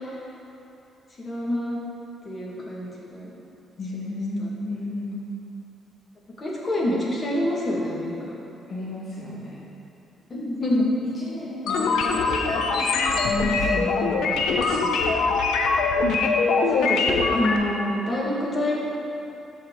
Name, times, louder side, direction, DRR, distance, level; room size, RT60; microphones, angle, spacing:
voice 1, 1.2-1.8 2.2-3.3 4.0-4.5 6.4-8.4 10.3-10.9 16.7-18.8, left 1 dB, 35° left, -4 dB, 2.0 m, -27 dB
voice 2, 3.8-5.3 8.7-9.6 11.0-15.2, left 1 dB, 50° left, -8 dB, 1.6 m, -33 dB
sound 1, 11.7-17.6, left 4 dB, 85° left, 0.7 m, -22 dB
13.0 x 4.5 x 4.0 m, 2.9 s
cardioid pair, 90°, 0 cm